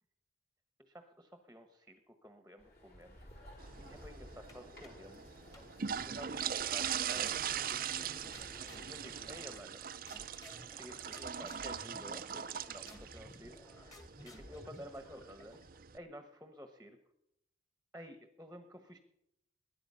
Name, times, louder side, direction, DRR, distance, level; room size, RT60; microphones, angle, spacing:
voice 1, 0.9-3.2 3.8-5.3 5.9-8.1 8.9-9.8 10.5-13.6 14.2-15.6 15.9-17.0 17.9-19.0, equal, 10° right, 7 dB, 1.2 m, -52 dB
sound 1, 2.6-9.6, equal, 50° left, 4.4 m, -55 dB
sound 2, 3.6-16.0, right 8 dB, 45° right, 0.6 m, -41 dB
sound 3, 4.5-5.1 5.5-6.7 7.3-7.8 8.3-9.8 10.1-15.8, left 1 dB, 20° left, 1.9 m, -56 dB
20.5 x 10.5 x 5.6 m, 0.79 s
head